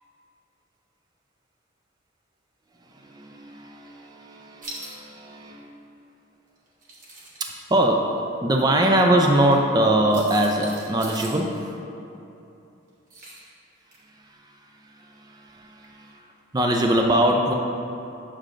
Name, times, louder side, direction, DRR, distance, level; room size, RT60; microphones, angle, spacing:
voice 1, 2.9-5.7 7.4-11.7 14.3-14.5 14.9-16.2 16.5-17.5, right 1 dB, 20° right, 2 dB, 0.4 m, -23 dB
sound 1, 4.6-4.9 6.7-7.4 9.4-9.6 10.1-11.4 13.1-13.5 13.9-14.0, right 1 dB, 40° right, 1.0 m, -40 dB
7.3 x 6.5 x 2.5 m, 2.8 s
head